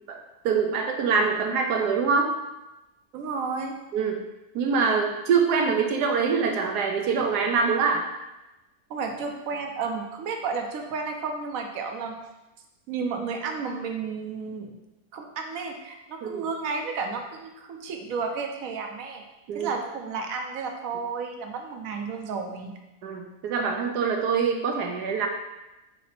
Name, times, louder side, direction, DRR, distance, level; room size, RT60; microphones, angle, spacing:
voice 1, 0.4-2.3 3.9-4.2 4.5-8.0 16.2-16.4 19.5-19.7 23.0-25.3, right 5 dB, 80° right, 3 dB, 1.3 m, -24 dB
voice 2, 3.1-3.8 8.9-12.2 12.9-14.7 15.1-19.2 19.5-22.8, right 5 dB, 65° right, 3 dB, 1.1 m, -32 dB
8.3 x 2.8 x 4.3 m, 1.0 s
omnidirectional pair, 1.7 m